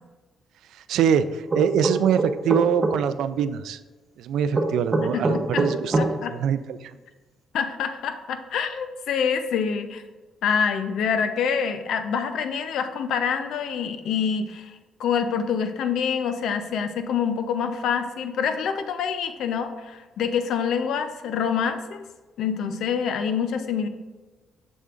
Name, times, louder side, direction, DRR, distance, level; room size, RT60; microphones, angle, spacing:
voice 1, 0.9-3.8 4.2-6.0 6.3-6.9, right 8 dB, 80° right, 13 dB, 0.3 m, -24 dB
sound 1, 1.5-3.0 4.5-6.1, right 2 dB, 30° right, 0.8 m, -22 dB
voice 2, 5.1-5.6 6.0-6.3 7.5-10.0 10.4-22.0 22.4-23.9, left 7 dB, 75° left, 9 dB, 0.5 m, -26 dB
6.6 x 6.2 x 2.4 m, 1.3 s
cardioid pair, 90°, 0 cm